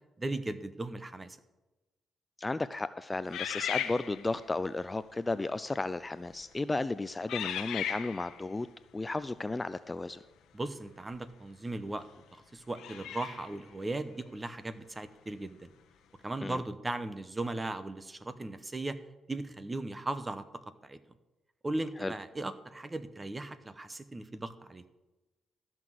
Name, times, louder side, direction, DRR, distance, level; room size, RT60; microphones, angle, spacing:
voice 1, 0.2-1.4 10.5-12.1 12.3-15.7 16.2-19.0 19.3-20.4 20.8-21.0 21.6-24.8, right 2 dB, 20° right, 13 dB, 0.9 m, -37 dB
voice 2, 2.4-8.7 8.9-10.2 16.4-16.6 22.0-22.1, left 2 dB, 20° left, 14 dB, 0.4 m, -34 dB
sound 1, 3.3-4.5 5.3-5.5 6.2-6.5 7.3-8.4 11.1-11.2 12.7-13.6, left 10 dB, 80° left, 1.1 m, -37 dB
13.0 x 6.1 x 7.6 m, 1.1 s
cardioid pair, 90°, 0 cm